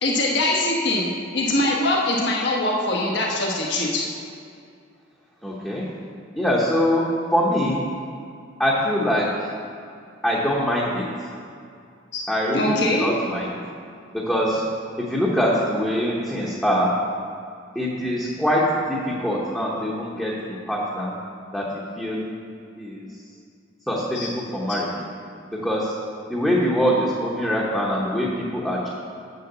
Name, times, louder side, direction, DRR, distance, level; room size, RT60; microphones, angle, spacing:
voice 1, 0.0-4.0 12.1-12.2 12.5-13.1 24.1-24.3, left 1 dB, 60° left, -3 dB, 1.3 m, -22 dB
voice 2, 5.4-5.9 6.3-7.1 7.3-7.8 8.6-9.3 10.2-11.1 12.3-13.4 14.1-14.6 15.0-16.9 17.7-21.1 21.5-21.6 22.0-22.3 22.8-23.1 23.9-24.9 25.5-25.9 26.3-28.9, equal, 5° left, -6 dB, 1.0 m, -23 dB
7.0 x 6.7 x 6.8 m, 2.4 s
head